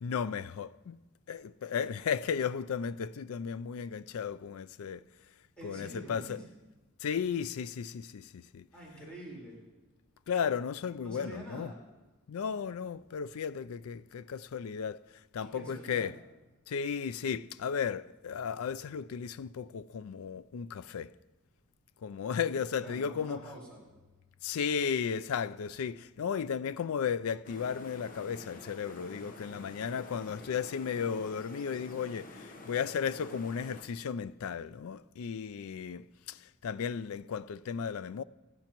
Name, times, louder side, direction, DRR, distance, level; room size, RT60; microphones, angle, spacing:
voice 1, 0.0-5.0 5.6-6.4 7.0-8.7 10.3-11.7 12.3-15.0 15.3-16.1 16.7-21.1 22.0-23.4 24.4-38.2, left 7 dB, 70° left, 0.4 m, -35 dB
voice 2, 5.6-6.5 8.7-9.6 11.0-11.8 15.4-16.1 22.8-23.8, right 1 dB, 5° left, 4.1 m, -46 dB
sound 1, 27.4-33.8, left 2 dB, 40° left, 1.0 m, -49 dB
26.0 x 10.5 x 3.0 m
head